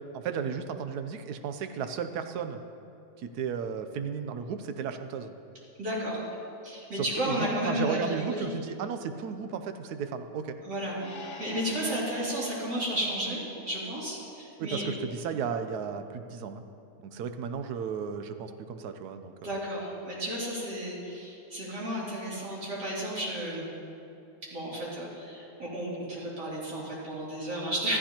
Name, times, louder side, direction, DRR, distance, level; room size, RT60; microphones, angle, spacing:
voice 1, 0.1-2.6 3.2-5.3 7.0-10.6 14.6-16.6 17.1-19.6, right 6 dB, 75° right, 8 dB, 1.1 m, -34 dB
voice 2, 5.8-6.2 6.6-8.5 10.6-11.0 11.4-14.9 19.4-23.6 24.5-28.0, equal, 90° right, -8 dB, 3.6 m, -33 dB
sound 1, 10.9-14.5, left 3 dB, 50° left, 1.1 m, -47 dB
13.5 x 12.5 x 2.9 m, 2.7 s
omnidirectional pair, 1.8 m